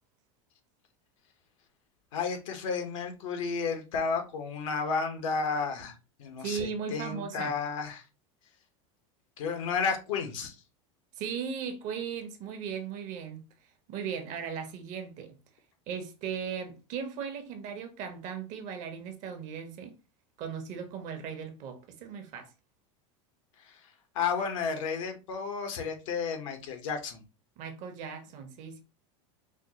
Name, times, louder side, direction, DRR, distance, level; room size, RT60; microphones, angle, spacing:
voice 1, 2.1-5.9 6.2-8.0 9.4-10.6 23.6-23.8 24.1-27.2, left 5 dB, 80° left, 1.0 m, -32 dB
voice 2, 6.4-7.6 11.2-13.4 13.9-15.4 15.9-19.9 20.4-22.5 27.6-28.8, right 7 dB, 50° right, 0.8 m, -37 dB
4.3 x 2.1 x 2.8 m
supercardioid pair, 115°, 17 cm